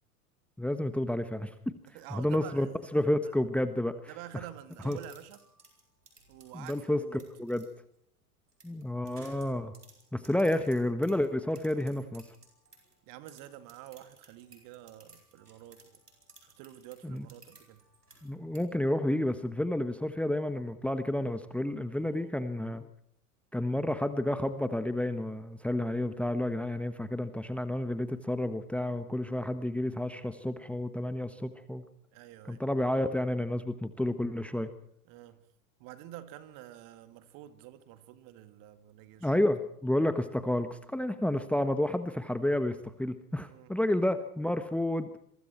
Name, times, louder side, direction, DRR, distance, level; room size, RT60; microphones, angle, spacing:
voice 1, 0.6-1.7 2.1-4.0 4.8-5.0 6.5-7.7 8.6-9.7 10.1-12.3 17.0-17.3 18.2-22.8 23.5-31.8 32.5-34.7 39.2-45.2, left 1 dB, 5° left, 1.3 m, -30 dB
voice 2, 1.9-2.7 3.2-3.3 4.1-5.4 6.3-7.2 13.1-16.0 16.4-17.8 22.0-22.5 32.1-32.6 35.1-35.4 35.8-39.3 43.4-43.8, right 13 dB, 45° right, 2.3 m, -48 dB
sound 1, 4.7-7.7 8.5-13.0 13.3-18.6, right 3 dB, 85° right, 5.5 m, -58 dB
27.5 x 23.5 x 4.6 m
figure-of-eight pair, 85°, 45 cm